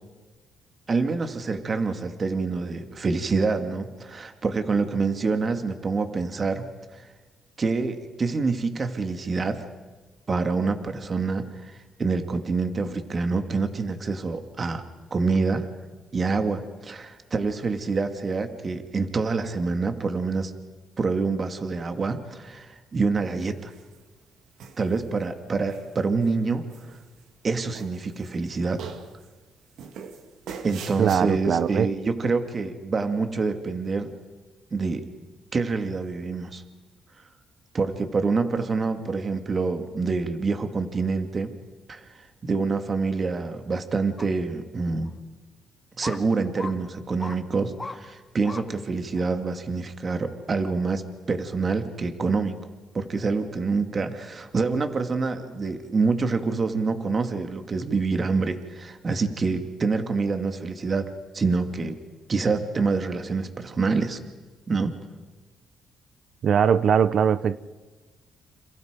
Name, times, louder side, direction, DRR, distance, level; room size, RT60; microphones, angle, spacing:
voice 1, 0.9-7.1 7.6-9.7 10.3-14.8 15.1-15.7 16.1-20.5 21.0-23.7 24.8-26.7 27.4-28.9 30.6-34.1 34.7-35.0 35.5-36.6 37.7-41.5 41.9-42.1 42.4-45.1 46.0-52.6 52.9-61.1 61.3-62.0 62.3-64.2 64.7-65.0, right 4 dB, 35° right, 2.3 m, -26 dB
sound 1, 23.4-24.0 24.6-25.3 25.7-26.3 26.7-27.5 27.7-28.5 28.8-29.3 29.8-31.2, right 6 dB, 80° right, 2.3 m, -42 dB
voice 2, 31.0-31.9 66.4-67.6, right 7 dB, 60° right, 0.8 m, -21 dB
sound 2, 44.2-44.3 45.0-45.1 46.0-46.2 46.5-46.7 47.2-47.4 47.8-48.0 48.4-48.6 49.2-49.3, left 3 dB, 20° left, 1.7 m, -36 dB
29.5 x 28.0 x 5.3 m
cardioid pair, 90°, 0 cm